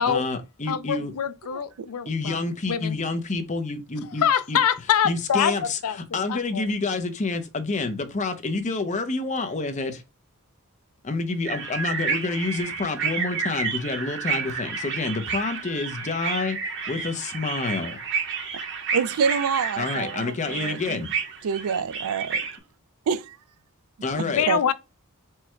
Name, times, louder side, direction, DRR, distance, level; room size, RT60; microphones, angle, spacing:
voice 1, 0.0-1.1 2.1-4.6 5.0-5.8 6.1-10.0 11.0-16.6 16.9-18.0 19.8-21.1 24.0-24.4, left 3 dB, 35° left, 0.7 m, -28 dB
voice 2, 0.7-2.4 2.7-3.0 4.2-5.5 5.8-6.0 6.3-6.7 24.2-24.7, left 8 dB, 75° left, 0.4 m, -24 dB
voice 3, 1.5-1.9 18.9-21.1 21.4-22.5 23.1-23.4 24.1-24.6, right 6 dB, 80° right, 0.4 m, -27 dB
sound 1, 11.5-22.6, right 5 dB, 55° right, 1.1 m, -30 dB
4.6 x 2.3 x 4.3 m
head